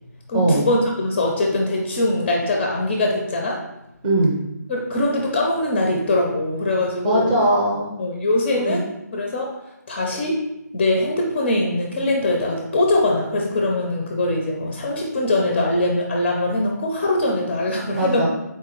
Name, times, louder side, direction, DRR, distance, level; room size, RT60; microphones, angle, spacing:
voice 1, 0.3-3.6 4.7-7.3 8.0-8.8 9.1-9.5 9.9-10.4 10.7-18.3, left 2 dB, 20° left, 0 dB, 0.4 m, -22 dB
voice 2, 4.0-4.3 7.0-8.0 8.5-8.8 18.0-18.3, right 1 dB, 25° right, -2 dB, 0.6 m, -20 dB
3.9 x 2.8 x 3.8 m, 0.88 s
figure-of-eight pair, 155°, 10 cm